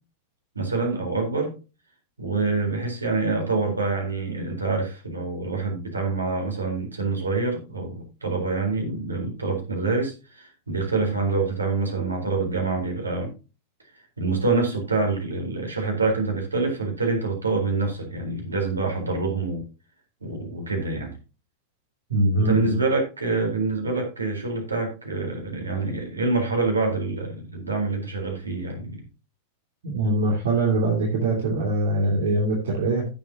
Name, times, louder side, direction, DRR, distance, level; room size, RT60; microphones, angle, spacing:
voice 1, 0.5-1.5 2.2-13.3 14.2-19.6 20.2-21.1 22.3-29.0, right 3 dB, 80° right, 2 dB, 4.0 m, -26 dB
voice 2, 22.1-22.8 29.8-33.1, right 2 dB, 60° right, -1 dB, 2.7 m, -23 dB
15.5 x 7.1 x 2.8 m, 0.31 s
figure-of-eight pair, 90°, 0 cm